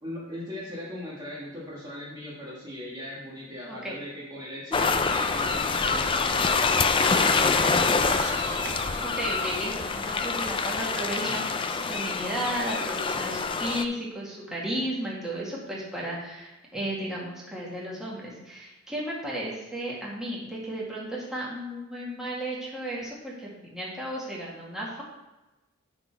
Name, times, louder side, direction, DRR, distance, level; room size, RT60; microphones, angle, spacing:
voice 1, 0.0-8.1, left 1 dB, 20° right, -6 dB, 1.5 m, -39 dB
voice 2, 3.7-4.0 9.0-25.0, right 1 dB, 5° right, -6 dB, 1.9 m, -34 dB
sound 1, 4.7-13.8, left 4 dB, 25° left, 0.4 m, -26 dB
sound 2, 4.8-11.3, right 4 dB, 60° right, 0.8 m, -45 dB
9.8 x 4.0 x 4.5 m, 1.0 s
head